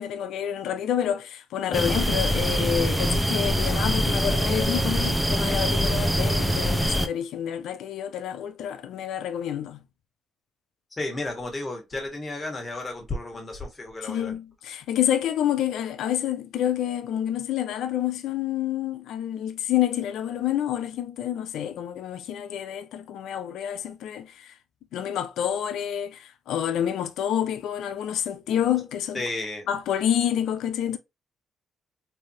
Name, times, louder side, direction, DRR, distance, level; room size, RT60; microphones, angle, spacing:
voice 1, 0.0-9.8 14.0-24.5 24.9-29.2 29.7-31.0, left 10 dB, 80° left, 0.5 m, -28 dB
sound 1, 1.7-7.1, equal, 5° right, 0.5 m, -24 dB
voice 2, 10.9-14.3 29.1-29.6, left 2 dB, 25° left, 1.4 m, -33 dB
3.3 x 2.6 x 2.8 m
cardioid pair, 90°, 0 cm